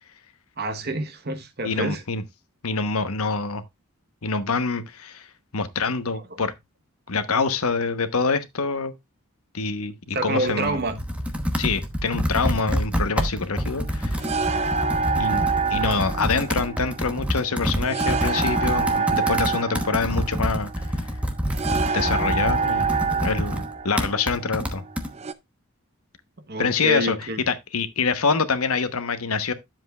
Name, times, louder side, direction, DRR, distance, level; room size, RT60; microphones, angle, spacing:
voice 1, 0.6-2.0 6.1-6.2 10.1-11.0 26.5-27.4, right 2 dB, 45° right, 1.1 m, -27 dB
voice 2, 1.6-2.2 2.6-3.6 4.2-5.3 5.5-6.5 7.1-8.9 9.5-10.8 11.6-14.3 15.2-20.9 21.8-22.9 23.2-24.8 26.6-29.5, left 4 dB, 75° left, 1.0 m, -26 dB
Computer keyboard, 10.5-25.1, equal, 5° right, 1.0 m, -27 dB
sound 1, 13.6-25.3, right 4 dB, 30° right, 0.5 m, -27 dB
10.5 x 7.5 x 2.3 m
head